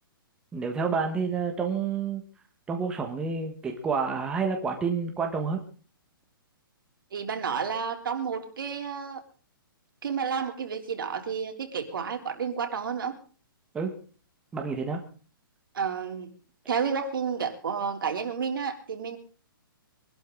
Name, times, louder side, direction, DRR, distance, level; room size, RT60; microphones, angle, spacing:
voice 1, 0.5-2.2 2.7-5.6 13.7-13.9 14.5-15.0, right 5 dB, 5° right, 3 dB, 1.5 m, -29 dB
voice 2, 7.1-9.2 10.0-13.2 15.7-16.3 16.7-19.2, right 6 dB, 65° right, 5 dB, 3.4 m, -31 dB
24.0 x 12.5 x 3.9 m, 0.39 s
hypercardioid pair, 170°, 12 cm